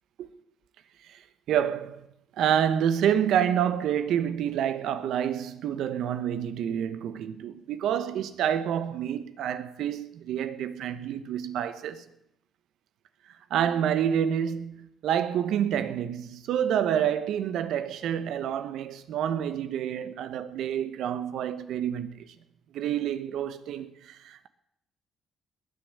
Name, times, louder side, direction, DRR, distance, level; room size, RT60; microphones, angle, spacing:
voice 1, 1.5-2.1 2.4-12.0 13.5-22.3 22.7-24.5, right 9 dB, 80° right, 1.1 m, -28 dB
20.0 x 6.7 x 8.8 m
cardioid pair, 90°, 0 cm